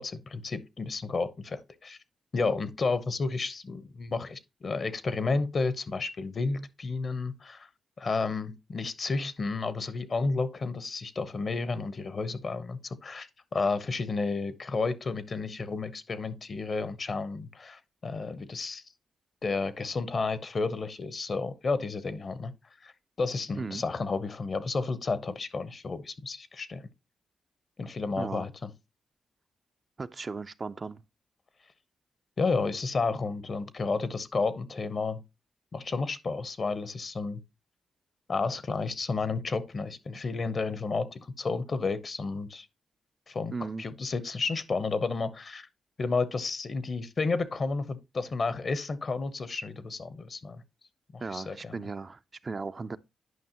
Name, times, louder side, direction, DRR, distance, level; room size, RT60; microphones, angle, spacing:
voice 1, 0.0-2.0 2.3-7.7 8.0-13.3 13.5-18.8 19.4-22.5 22.8-22.9 23.2-26.8 27.8-28.7 32.4-35.2 35.7-37.4 38.3-42.7 43.3-43.5 43.8-45.7 46.0-50.6 51.1-51.8, left 4 dB, 50° left, 0.8 m, -31 dB
voice 2, 30.0-31.0 43.5-43.8 51.2-53.0, right 4 dB, 40° right, 0.4 m, -36 dB
9.4 x 5.4 x 2.9 m
cardioid pair, 60°, 0 cm